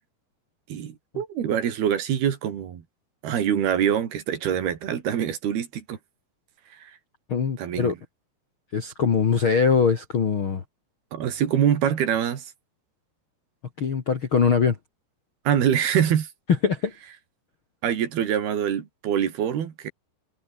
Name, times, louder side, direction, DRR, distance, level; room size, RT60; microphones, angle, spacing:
voice 1, 0.7-2.8 3.2-6.0 6.7-6.9 7.6-8.0 11.1-12.5 15.5-16.3 17.8-19.9, right 9 dB, 65° right, 4.2 m, -25 dB
voice 2, 7.3-7.9 8.7-10.6 13.8-14.8 16.6-16.9, left 6 dB, 45° left, 1.8 m, -22 dB
omnidirectional pair, 5.0 m